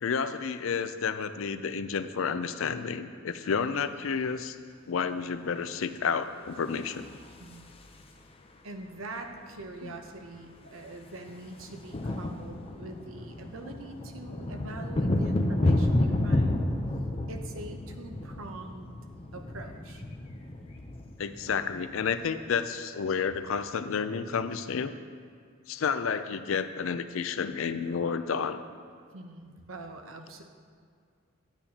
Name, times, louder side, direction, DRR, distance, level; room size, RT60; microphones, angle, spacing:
voice 1, 0.0-4.6 4.9-7.1 9.8-9.9 21.2-24.9 25.7-28.6, left 6 dB, 75° left, 11 dB, 0.4 m, -30 dB
sound 1, 6.7-8.3 9.6-9.7 9.9-10.1 10.4-22.5, left 1 dB, 30° left, 0.5 m, -31 dB
voice 2, 8.6-16.6 17.3-18.9 19.3-20.0 29.1-30.4, right 2 dB, 90° right, 5 dB, 0.8 m, -44 dB
10.5 x 9.0 x 2.8 m, 2.1 s
head